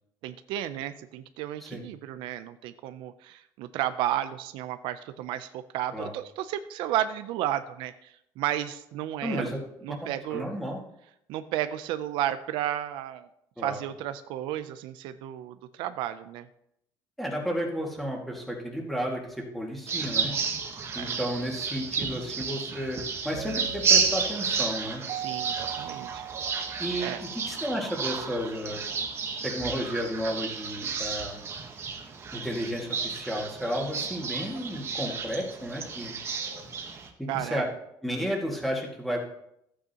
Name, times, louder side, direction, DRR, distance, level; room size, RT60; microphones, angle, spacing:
voice 1, 0.2-9.5 9.8-10.5 11.3-13.3 13.6-16.5 21.0-21.2 25.1-26.3 27.0-27.2 37.3-37.7, right 12 dB, 80° right, 11 dB, 0.5 m, -33 dB
voice 2, 9.2-9.6 10.3-10.8 13.6-13.8 17.2-20.3 20.9-23.0 23.2-25.0 26.8-28.8 29.4-31.4 32.3-36.1 37.2-37.6 38.0-39.2, equal, ahead, -1 dB, 2.1 m, -32 dB
sound 1, 19.9-37.1, right 5 dB, 30° right, 1.2 m, -31 dB
sound 2, 23.3-28.0, right 10 dB, 60° right, 0.9 m, -40 dB
13.5 x 8.7 x 2.9 m, 0.76 s
cardioid pair, 150°, 8 cm